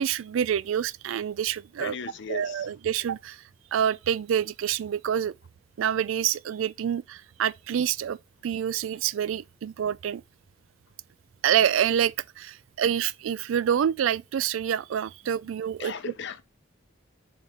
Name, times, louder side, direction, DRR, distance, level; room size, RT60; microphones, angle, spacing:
voice 1, 0.0-2.0 2.3-3.4 3.7-5.3 5.8-8.2 8.4-10.2 11.4-15.9, right 9 dB, 75° right, 0.3 m, -27 dB
voice 2, 1.8-2.7 15.8-16.4, left 5 dB, 65° left, 0.7 m, -37 dB
6.9 x 3.5 x 4.2 m
head